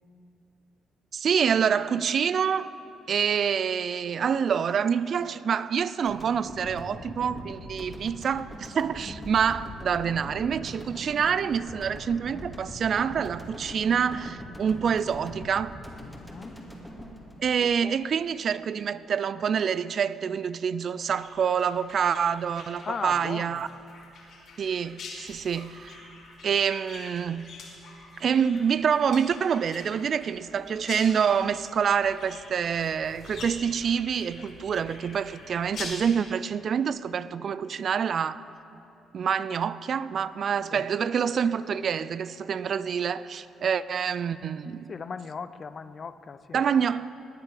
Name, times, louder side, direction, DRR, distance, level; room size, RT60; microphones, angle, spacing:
voice 1, 1.1-2.7 3.1-15.8 17.4-23.7 24.6-26.0 26.4-27.6 28.2-38.4 39.1-44.9 46.5-47.1, right 7 dB, 55° right, 0.4 m, -27 dB
sound 1, 6.1-18.3, equal, ahead, 2.4 m, -42 dB
voice 2, 16.0-16.6 17.6-17.9 22.8-23.6 40.7-40.8 44.9-46.6, left 5 dB, 40° left, 0.5 m, -38 dB
sound 2, 21.1-36.1, left 3 dB, 70° left, 3.8 m, -45 dB
18.5 x 10.5 x 5.0 m
cardioid pair, 90°, 0 cm